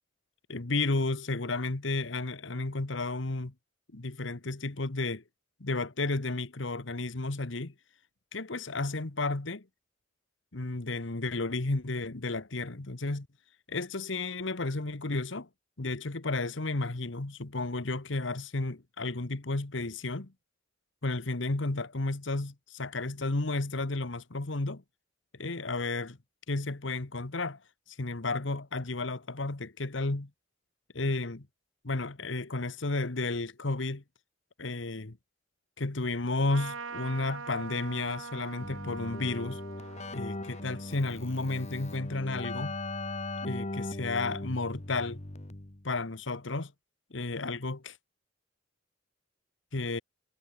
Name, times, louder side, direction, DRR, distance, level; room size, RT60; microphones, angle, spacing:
voice 1, 0.5-3.5 3.9-5.2 5.6-7.7 8.3-9.6 10.5-13.3 13.7-15.5 15.8-20.3 21.0-24.8 25.4-26.2 26.5-27.6 27.9-30.3 30.9-31.5 31.8-34.0 34.6-35.2 35.8-39.6 40.1-42.8 43.4-45.2 45.8-46.7 47.1-48.0 49.7-50.0, left 2 dB, 70° left, 1.4 m, -32 dB
Trumpet, 36.5-42.3, right 4 dB, 85° right, 1.9 m, -44 dB
Keyboard (musical), 38.6-45.9, left 2 dB, 35° left, 1.5 m, -39 dB
head